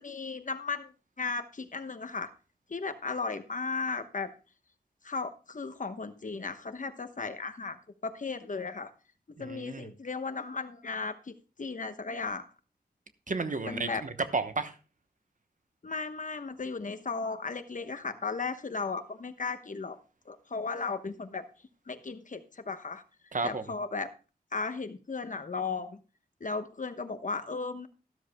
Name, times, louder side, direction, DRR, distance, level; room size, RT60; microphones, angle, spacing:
voice 1, 0.0-2.3 2.7-4.3 5.0-7.8 8.0-8.9 9.3-12.5 13.6-14.0 15.8-20.0 20.3-21.5 21.9-23.0 23.4-24.1 24.5-26.0 26.4-27.9, left 4 dB, 50° left, 9 dB, 1.1 m, -35 dB
voice 2, 9.4-9.9 13.3-14.7 23.3-23.6, right 3 dB, 50° right, 10 dB, 1.0 m, -32 dB
13.0 x 12.5 x 2.2 m, 0.33 s
wide cardioid pair, 75°, 17 cm